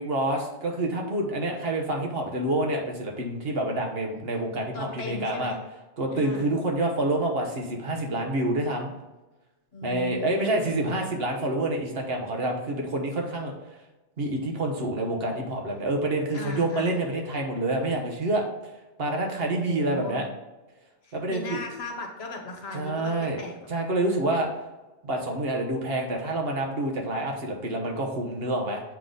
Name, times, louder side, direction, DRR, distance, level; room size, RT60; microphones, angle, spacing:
voice 1, 0.0-5.5 6.0-8.9 9.8-13.5 14.2-18.7 19.0-20.3 21.1-21.6 22.7-23.4 23.7-24.5 25.0-28.8, right 1 dB, 60° right, 1 dB, 1.2 m, -27 dB
voice 2, 4.7-5.6 6.1-6.5 9.7-11.0 16.3-17.0 19.5-20.2 21.0-23.1 23.4-23.7, left 2 dB, 65° left, 2 dB, 1.2 m, -37 dB
7.3 x 3.8 x 3.9 m, 1.1 s
omnidirectional pair, 1.2 m